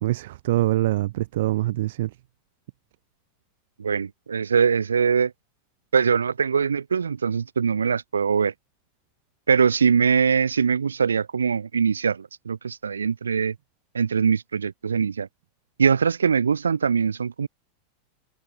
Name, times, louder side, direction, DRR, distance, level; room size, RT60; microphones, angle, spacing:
voice 1, 0.0-2.1, right 16 dB, 65° right, 2.4 m, -24 dB
voice 2, 3.8-5.3 5.9-8.5 9.5-13.5 13.9-15.3 15.8-17.5, right 6 dB, 85° right, 6.5 m, -22 dB
open air
hypercardioid pair, 95°, 0 cm